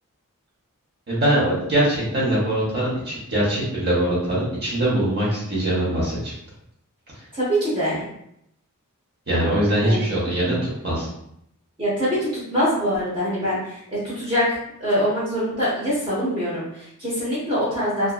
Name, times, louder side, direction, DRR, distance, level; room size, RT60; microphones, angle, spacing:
voice 1, 1.1-6.3 9.3-11.1, right 1 dB, 45° right, -6 dB, 1.0 m, -22 dB
voice 2, 7.3-8.0 9.8-10.0 11.8-14.5 14.8-18.1, equal, 25° right, -9 dB, 0.7 m, -24 dB
2.6 x 2.5 x 2.3 m, 0.75 s
head